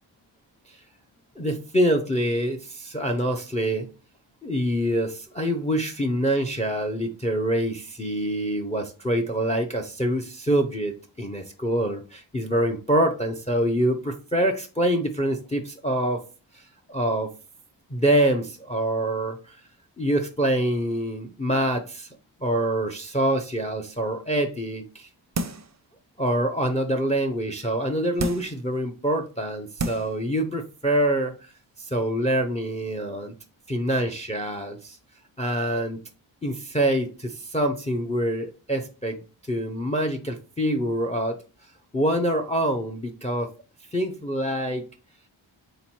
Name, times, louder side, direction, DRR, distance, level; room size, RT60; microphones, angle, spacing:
voice 1, 1.4-3.9 4.4-16.2 16.5-17.3 17.9-19.6 20.0-22.1 22.4-25.1 26.2-31.5 31.8-33.3 33.7-35.0 35.4-36.0 36.4-41.4 41.9-43.5 43.9-44.9, right 1 dB, 15° left, 6 dB, 0.5 m, -25 dB
sound 1, 25.3-25.8 26.3-26.4 28.2-28.6 29.3-29.4 29.8-30.2 30.6-30.7, right 3 dB, 35° right, 0.4 m, -30 dB
3.7 x 2.9 x 4.3 m, 0.35 s
wide cardioid pair, 60°, 48 cm